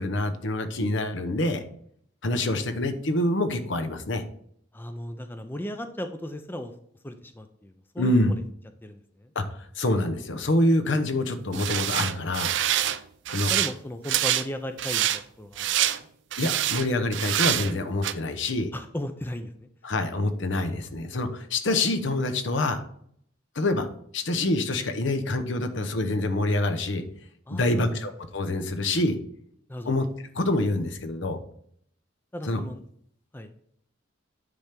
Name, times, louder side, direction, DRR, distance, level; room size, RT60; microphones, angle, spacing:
voice 1, 0.0-1.6 2.2-4.2 8.0-8.3 9.3-9.4 9.8-12.6 13.3-13.5 16.4-18.7 19.8-22.8 23.6-27.0 27.5-29.2 29.9-30.1 30.3-31.4 32.5-32.6, left 1 dB, 65° left, 7 dB, 0.9 m, -26 dB
voice 2, 4.7-6.7 7.0-8.4 8.8-9.3 13.5-15.7 16.0-16.1 18.7-19.7 27.5-28.0 29.7-29.9 32.3-32.8 33.3-33.5, equal, 10° left, 7 dB, 0.5 m, -36 dB
sound 1, 11.5-13.0 13.3-13.7 14.0-14.4 14.8-15.2 15.6-16.0 16.3-16.9 17.1-17.7 18.0-18.1, right 12 dB, 60° right, 0.5 m, -26 dB
9.7 x 3.5 x 5.8 m, 0.65 s
head